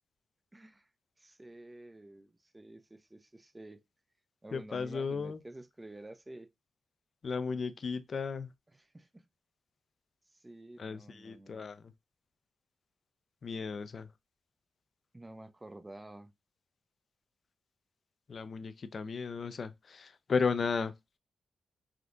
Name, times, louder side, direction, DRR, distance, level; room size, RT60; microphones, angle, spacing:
voice 1, 0.5-0.9 1.2-3.8 4.4-6.5 8.7-9.3 10.3-11.7 15.1-16.3, right 1 dB, 20° right, 0.5 m, -50 dB
voice 2, 4.5-5.4 7.2-8.5 10.8-11.8 13.4-14.1 18.3-20.9, left 5 dB, 55° left, 0.4 m, -34 dB
3.5 x 2.4 x 2.5 m
supercardioid pair, 55°, 0 cm